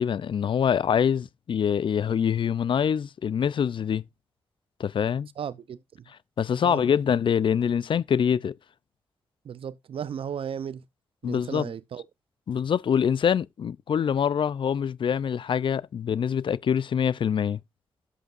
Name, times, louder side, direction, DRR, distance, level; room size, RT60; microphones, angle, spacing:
voice 1, 0.0-4.0 4.8-5.3 6.4-8.6 11.2-11.7 12.5-17.6, left 8 dB, 60° left, 0.4 m, -25 dB
voice 2, 5.4-6.1 6.6-6.9 9.4-10.8 11.2-12.1, right 8 dB, 70° right, 0.6 m, -35 dB
11.5 x 7.9 x 2.5 m
supercardioid pair, 40°, 10 cm